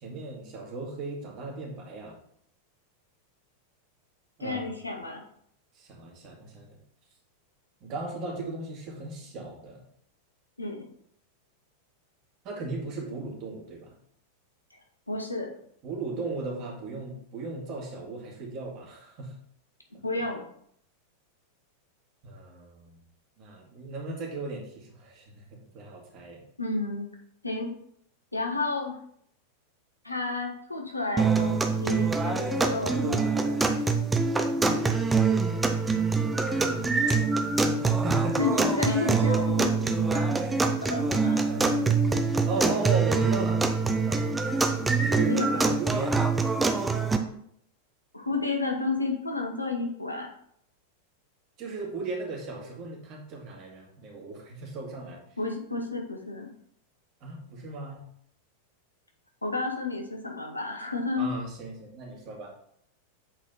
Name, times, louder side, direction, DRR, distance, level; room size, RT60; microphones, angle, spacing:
voice 1, 0.0-2.1 4.4-4.7 5.8-6.8 7.8-9.8 12.4-13.9 15.8-19.3 19.9-20.0 22.2-23.0 23.4-25.4 25.7-26.4 36.5-36.8 37.8-38.4 41.3-42.2 42.5-43.6 43.9-44.3 44.9-46.4 51.6-55.2 57.2-58.0 61.2-62.5, right 3 dB, 40° right, -1 dB, 2.2 m, -36 dB
voice 2, 4.4-5.2 10.6-10.8 15.1-15.5 20.0-20.4 26.6-27.1 27.4-27.7 28.3-28.9 30.0-33.6 38.4-40.3 40.9-41.4 45.3-45.6 48.1-50.3 55.4-56.5 59.4-61.2, left 3 dB, 85° left, 2 dB, 1.2 m, -31 dB
sound 1, 31.2-47.2, right 4 dB, 10° right, 0.6 m, -25 dB
sound 2, 32.0-32.1 32.5-34.2 36.9-37.1, left 3 dB, 45° left, 1.6 m, -38 dB
7.9 x 4.2 x 4.0 m, 0.68 s
figure-of-eight pair, 90°, 0 cm